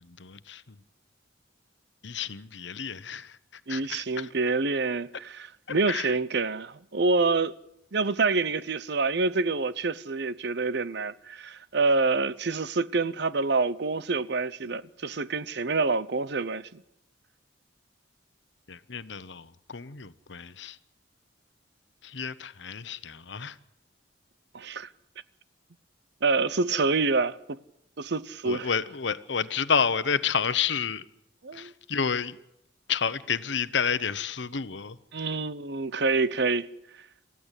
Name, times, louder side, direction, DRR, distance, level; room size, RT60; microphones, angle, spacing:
voice 1, 0.2-0.6 2.0-3.4 3.7-4.3 5.9-6.1 18.7-20.8 22.0-23.5 28.4-31.0 31.5-32.4 32.9-35.0, left 6 dB, 70° left, 1.0 m, -30 dB
voice 2, 3.7-7.5 7.9-16.8 24.5-24.9 26.2-27.6 28.0-28.7 31.4-31.7 35.1-36.7, right 3 dB, 60° right, 0.8 m, -27 dB
27.5 x 15.0 x 8.3 m
head